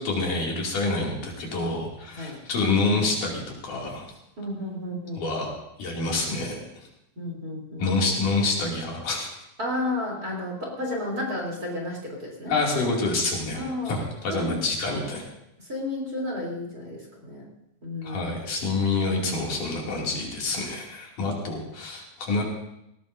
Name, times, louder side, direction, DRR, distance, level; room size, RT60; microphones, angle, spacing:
voice 1, 0.0-4.1 5.2-5.5 5.8-6.6 7.8-9.3 12.5-15.3 18.0-22.4, left 3 dB, 70° left, -2 dB, 4.1 m, -27 dB
voice 2, 4.4-5.4 7.2-7.9 9.6-12.5 13.5-13.9 14.3-14.6 15.6-17.5 17.8-18.3 21.5-21.6, left 1 dB, 25° right, -2 dB, 3.6 m, -32 dB
19.5 x 18.0 x 2.7 m, 0.83 s
omnidirectional pair, 3.8 m